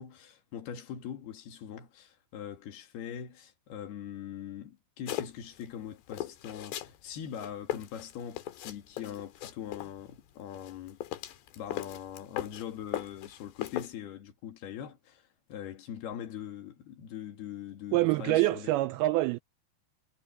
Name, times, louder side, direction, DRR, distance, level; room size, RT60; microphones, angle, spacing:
voice 1, 0.0-11.0 11.6-15.2 15.5-18.7, left 9 dB, 70° left, 3.9 m, -42 dB
sound 1, 5.1-5.7 6.1-7.0 7.3-9.9 10.5-12.7 12.9-13.9, left 14 dB, 85° left, 3.7 m, -38 dB
voice 2, 17.9-19.4, right 18 dB, 85° right, 2.2 m, -26 dB
omnidirectional pair, 4.8 m